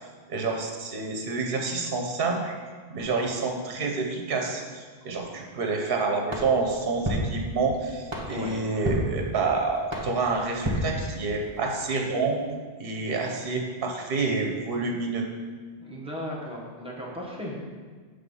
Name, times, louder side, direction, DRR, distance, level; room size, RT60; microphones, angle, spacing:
voice 1, 0.3-2.5 2.9-12.4 12.8-15.3, right 3 dB, 65° right, 2 dB, 1.1 m, -28 dB
sound 1, 6.3-11.6, right 1 dB, 30° right, 1.1 m, -33 dB
voice 2, 8.3-8.6 15.8-17.6, equal, 5° right, -4 dB, 1.1 m, -36 dB
7.8 x 3.4 x 5.4 m, 1.5 s
omnidirectional pair, 1.1 m